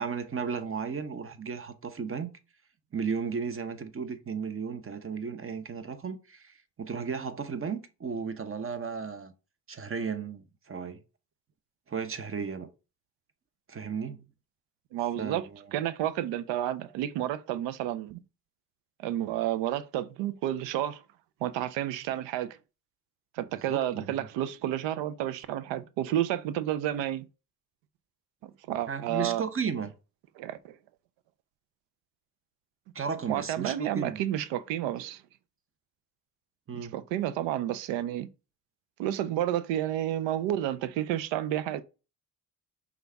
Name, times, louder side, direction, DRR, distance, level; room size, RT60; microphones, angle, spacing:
voice 1, 0.0-2.3 2.9-9.3 9.7-11.0 11.9-12.7 13.7-14.2 15.2-15.6 23.7-24.1 28.9-29.9 32.9-34.2 36.7-36.9, right 6 dB, 30° right, 0.7 m, -34 dB
voice 2, 14.9-18.2 19.0-21.0 21.4-22.6 23.3-27.2 28.4-29.4 30.4-30.8 33.3-35.2 36.7-38.3 39.0-41.8, right 12 dB, 85° right, 0.5 m, -31 dB
5.2 x 2.4 x 3.4 m
supercardioid pair, 60°, 43 cm